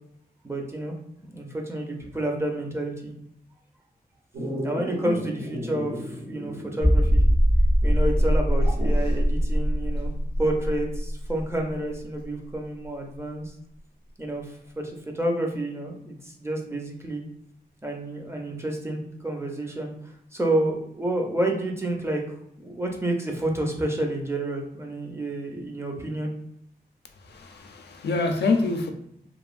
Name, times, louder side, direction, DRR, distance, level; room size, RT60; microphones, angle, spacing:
voice 1, 0.4-0.9 1.3-3.1 4.6-7.2 7.8-10.1 10.4-13.5 14.2-17.2 17.8-22.2 22.6-26.3, right 1 dB, 15° right, 0.5 m, -29 dB
Dog, 4.3-7.1 7.4-7.5 8.6-9.2 11.3-11.4, equal, 90° right, 1.0 m, -34 dB
sound 1, 6.8-12.2 12.5-12.6 13.2-13.3, equal, 65° right, 1.0 m, -22 dB
voice 2, 27.1-28.9, left 3 dB, 85° left, 0.4 m, -26 dB
3.0 x 2.2 x 2.4 m
wide cardioid pair, 100°, 17 cm